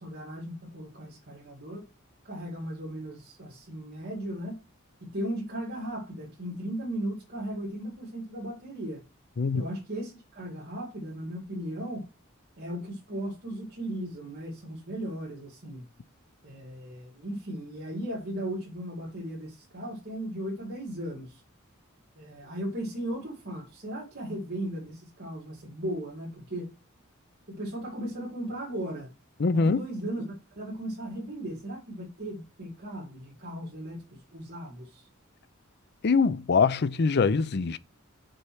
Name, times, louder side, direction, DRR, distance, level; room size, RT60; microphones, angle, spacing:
voice 1, 0.0-1.8 2.2-4.6 5.1-9.0 9.5-12.1 12.6-15.9 16.4-21.4 22.2-26.7 27.5-29.1 29.5-34.0 34.3-35.1, right 1 dB, 50° right, 2.3 m, -36 dB
voice 2, 29.4-29.8 36.0-37.8, left 4 dB, 55° left, 0.5 m, -23 dB
6.4 x 4.4 x 6.2 m
head